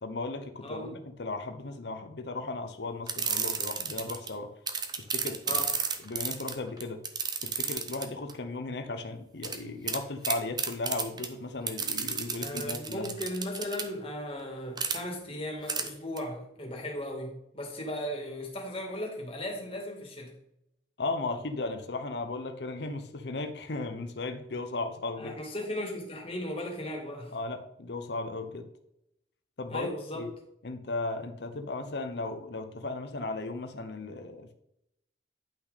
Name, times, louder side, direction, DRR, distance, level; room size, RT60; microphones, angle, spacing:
voice 1, 0.0-4.5 5.1-5.6 6.0-7.0 7.4-13.1 21.0-25.3 27.3-28.7 29.6-30.3 30.6-34.5, left 3 dB, 65° left, 7 dB, 0.8 m, -36 dB
voice 2, 0.6-1.0 5.5-5.7 12.4-20.3 25.2-27.4 29.7-30.3, left 1 dB, 30° left, 0 dB, 2.3 m, -37 dB
sound 1, 3.1-4.3 4.7-8.3 9.4-9.6 9.9-10.0 10.2-11.3 11.7-13.8 14.8-15.0 15.7-15.9 16.2-16.3, right 6 dB, 25° right, 0.8 m, -31 dB
10.5 x 5.9 x 4.1 m, 0.79 s
head